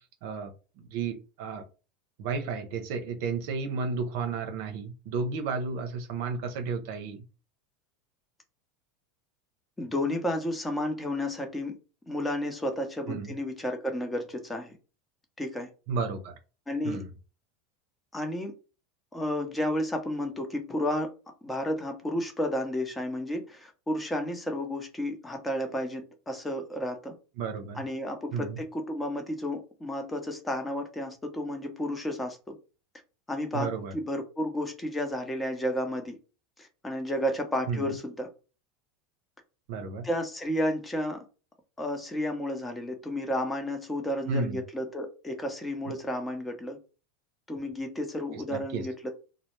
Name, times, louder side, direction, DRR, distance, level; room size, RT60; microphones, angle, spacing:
voice 1, 0.2-1.6 2.2-7.2 13.1-13.3 15.9-16.3 16.8-17.1 27.4-27.8 28.3-28.6 33.5-33.9 37.7-38.0 39.7-40.1 44.3-44.6 45.8-45.9 48.3-48.9, right 4 dB, 70° right, 0.6 m, -33 dB
voice 2, 9.8-11.8 12.1-14.7 15.4-15.7 16.7-17.0 18.1-18.5 19.1-21.1 21.4-27.1 27.8-32.6 33.3-36.2 36.6-38.3 40.0-41.2 41.8-46.8 47.5-49.1, left 1 dB, 10° left, 0.7 m, -32 dB
2.0 x 2.0 x 3.0 m
supercardioid pair, 110°, 0 cm